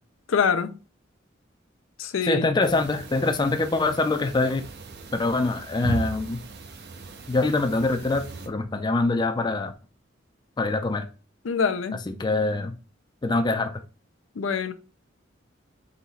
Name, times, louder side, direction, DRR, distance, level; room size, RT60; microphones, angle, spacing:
voice 1, 0.3-0.8 2.0-2.5 11.4-12.0 14.4-14.7, left 6 dB, 85° left, 0.5 m, -24 dB
voice 2, 2.3-4.6 5.1-6.4 7.3-9.7 10.6-11.1 12.1-12.7 13.2-13.8, left 2 dB, 20° left, 0.4 m, -24 dB
sound 1, 2.6-8.5, right 3 dB, 55° right, 0.7 m, -37 dB
3.8 x 3.0 x 4.1 m
head